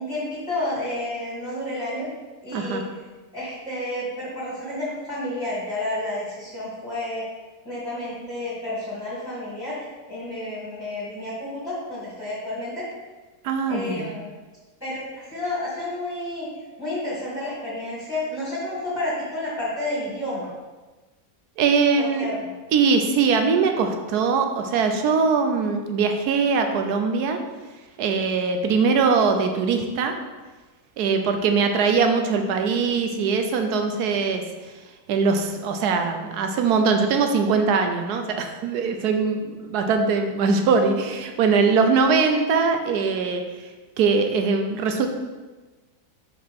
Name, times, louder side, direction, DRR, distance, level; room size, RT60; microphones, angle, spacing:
voice 1, 0.0-2.1 2.4-2.8 3.3-7.2 7.6-12.9 13.7-14.3 14.8-15.0 15.3-16.5 16.8-20.5 22.0-22.5, left 1 dB, 15° left, -10 dB, 2.1 m, -30 dB
voice 2, 2.5-2.8 13.4-14.2 21.6-22.3 22.7-27.4 28.0-30.1 31.0-34.4 35.1-43.7 44.0-45.1, right 5 dB, 90° right, 5 dB, 1.3 m, -21 dB
5.5 x 5.1 x 4.3 m, 1.2 s
omnidirectional pair, 1.6 m